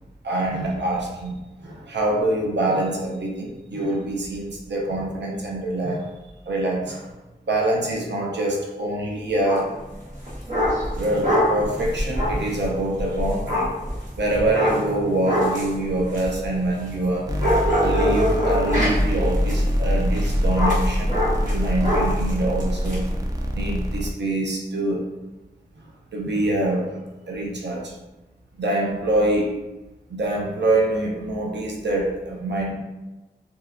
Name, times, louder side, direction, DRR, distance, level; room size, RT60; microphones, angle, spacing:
voice 1, 0.2-6.1 6.5-7.2 7.5-9.7 11.0-13.7 14.2-17.3 17.8-23.1 23.5-25.1 25.8-28.0 28.6-29.6 30.1-32.7, right 1 dB, 90° right, -1 dB, 0.5 m, -25 dB
sound 1, 9.4-9.7 10.1-17.0 17.4-23.0, equal, 50° right, 1.2 m, -24 dB
sound 2, 17.3-24.1, equal, 20° right, 0.4 m, -24 dB
2.7 x 2.1 x 2.3 m, 1.1 s
wide cardioid pair, 45°, 18 cm